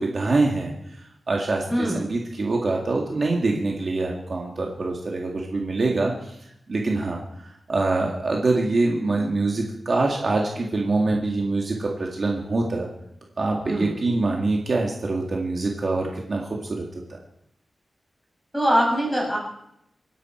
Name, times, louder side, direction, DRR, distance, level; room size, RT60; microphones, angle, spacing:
voice 1, 0.0-6.4 6.7-12.9 13.4-17.0, right 3 dB, 45° right, -1 dB, 2.0 m, -25 dB
voice 2, 1.7-2.0 13.6-14.0 18.5-19.4, equal, ahead, -3 dB, 6.8 m, -22 dB
25.5 x 10.5 x 4.5 m, 0.78 s
wide cardioid pair, 180°, 0 cm